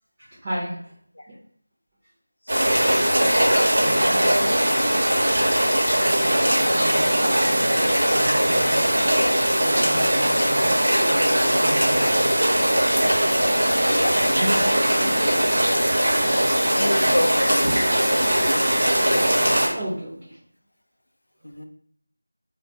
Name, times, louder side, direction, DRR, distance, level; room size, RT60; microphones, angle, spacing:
voice 1, 0.2-0.9 1.3-1.4 2.6-3.1 6.0-8.8 9.5-10.8 11.3-12.6 14.4-15.3 19.7-20.4, equal, 20° right, -10 dB, 0.6 m, -34 dB
sound 1, 2.5-19.7, right 1 dB, 55° right, 0.7 m, -20 dB
voice 2, 3.5-4.6 14.0-14.3 16.7-17.6 18.1-18.3 21.4-21.7, left 1 dB, 70° left, 4 dB, 0.4 m, -29 dB
2.2 x 2.0 x 2.7 m, 0.62 s
figure-of-eight pair, 170°, 0 cm